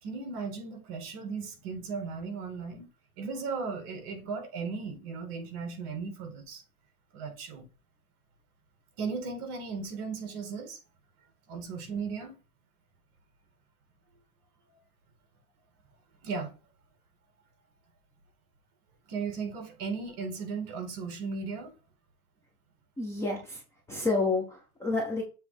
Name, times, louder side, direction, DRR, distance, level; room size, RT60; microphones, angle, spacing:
voice 1, 0.0-2.9 3.2-6.6 7.1-7.7 9.0-10.8 11.5-12.4 16.2-16.5 19.1-21.8, right 5 dB, 40° right, 2.5 m, -36 dB
voice 2, 23.0-23.6 23.9-25.2, left 3 dB, 5° left, 0.8 m, -29 dB
7.5 x 3.4 x 5.1 m
supercardioid pair, 160°, 45 cm